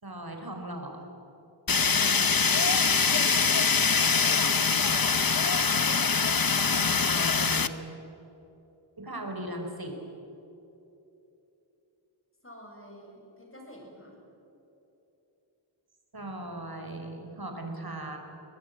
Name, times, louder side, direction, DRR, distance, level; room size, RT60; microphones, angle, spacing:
voice 1, 0.0-1.1 6.7-8.0 9.0-10.0 16.1-18.2, right 1 dB, 50° right, 3 dB, 4.4 m, -38 dB
Fire, 1.7-7.7, left 5 dB, 50° left, 1.0 m, -24 dB
voice 2, 3.9-4.9 12.4-14.2, equal, 30° left, 0 dB, 7.3 m, -48 dB
23.0 x 20.0 x 9.1 m, 3.0 s
wide cardioid pair, 50°, 46 cm